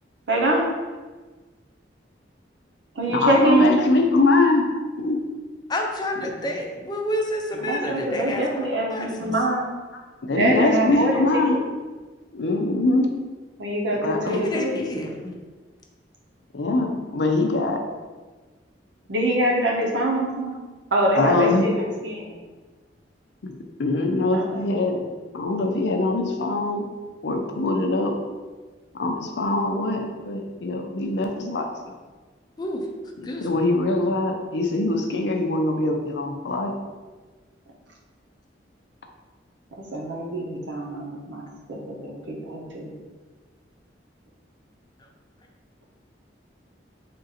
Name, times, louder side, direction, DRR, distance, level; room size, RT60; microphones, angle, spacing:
voice 1, 0.3-0.6 2.9-3.7 7.5-9.7 10.3-11.4 13.6-14.7 19.1-20.6 20.9-22.4 24.3-24.6 39.9-43.0, right 1 dB, 80° right, -1 dB, 0.8 m, -24 dB
voice 2, 3.1-4.6 5.0-5.2 6.2-6.3 10.2-11.6 12.3-13.1 13.9-14.5 16.5-17.8 21.1-21.7 23.4-23.5 23.8-25.0 25.3-26.9 27.2-28.1 29.0-31.7 33.2-36.7, left 2 dB, 70° left, 2 dB, 0.5 m, -23 dB
voice 3, 5.7-9.3 14.3-15.3 32.6-32.8 33.2-33.6, left 1 dB, 25° left, 1 dB, 0.5 m, -29 dB
3.7 x 2.5 x 4.1 m, 1.3 s
head